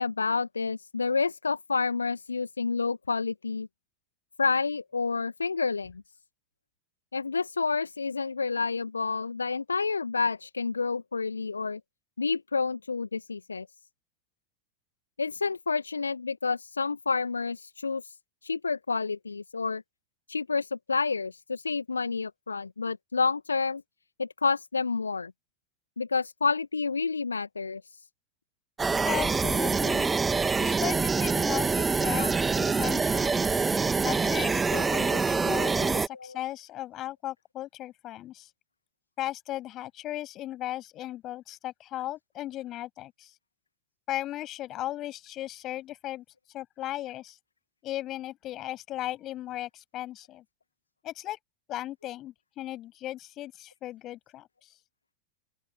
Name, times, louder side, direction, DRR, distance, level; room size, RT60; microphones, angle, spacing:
voice 1, 0.0-3.7 4.4-6.0 7.1-11.8 12.2-13.7 15.2-18.1 18.4-19.8 20.3-23.8 24.2-25.3 26.0-27.8 32.2-32.3 36.2-36.3, left 4 dB, 75° left, 1.7 m, -29 dB
sound 1, 28.8-36.1, right 4 dB, 15° right, 2.1 m, -25 dB
voice 2, 29.0-30.1 30.6-33.4 34.0-38.5 39.2-43.3 44.1-46.2 46.5-47.4 47.8-50.4 51.0-51.4 51.7-54.7, left 14 dB, 35° left, 7.1 m, -36 dB
open air
figure-of-eight pair, 90°, 0 cm